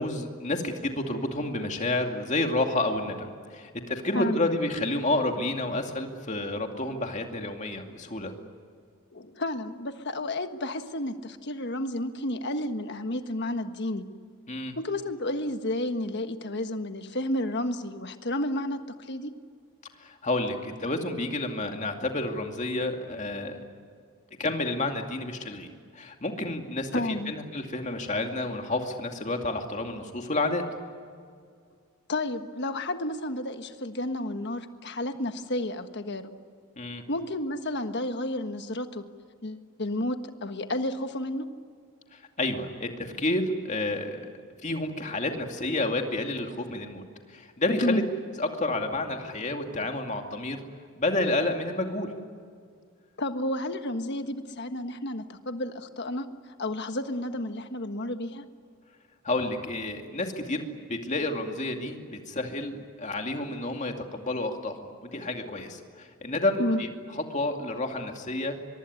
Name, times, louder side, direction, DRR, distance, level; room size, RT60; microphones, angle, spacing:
voice 1, 0.0-8.3 14.5-14.8 20.0-23.6 24.4-25.7 25.9-30.6 36.8-37.0 42.1-44.2 44.6-47.0 47.3-48.0 48.4-50.6 51.0-52.1 59.2-66.9 67.3-68.6, left 2 dB, 35° left, 4 dB, 2.4 m, -30 dB
voice 2, 4.1-4.5 9.1-14.0 14.8-19.3 26.9-27.3 32.1-36.3 37.1-39.0 39.4-40.2 40.4-41.5 47.8-48.0 53.2-56.3 56.6-58.4 66.6-66.8, left 1 dB, 50° left, 8 dB, 1.5 m, -31 dB
24.0 x 23.5 x 9.7 m, 2.1 s
head